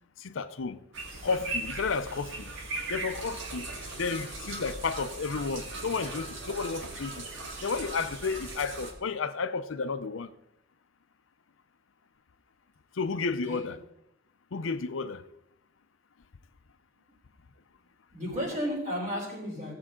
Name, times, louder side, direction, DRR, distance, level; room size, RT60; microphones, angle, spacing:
voice 1, 0.2-0.8 1.2-2.5 2.9-3.7 4.0-7.2 7.6-10.3 13.0-13.8 14.5-15.2, left 4 dB, 75° left, 0.6 m, -32 dB
sound 1, 0.9-8.9, right 2 dB, 65° right, 1.7 m, -38 dB
voice 2, 18.1-19.7, equal, 40° right, 3.8 m, -33 dB
17.0 x 7.6 x 3.8 m
head